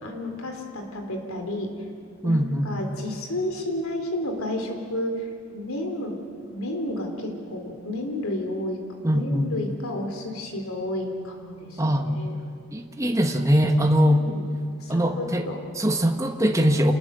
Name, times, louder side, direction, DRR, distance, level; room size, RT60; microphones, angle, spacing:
voice 1, 0.0-1.7 2.2-5.2 5.5-6.2 6.5-8.8 9.1-12.3 14.0-14.5 14.8-15.6, left 1 dB, 75° left, 4 dB, 3.5 m, -31 dB
voice 2, 2.2-2.7 9.0-9.5 11.8-12.2 12.7-14.2 14.9-15.5 15.8-16.9, equal, 15° right, 4 dB, 1.3 m, -21 dB
27.5 x 20.0 x 6.9 m, 2.4 s
head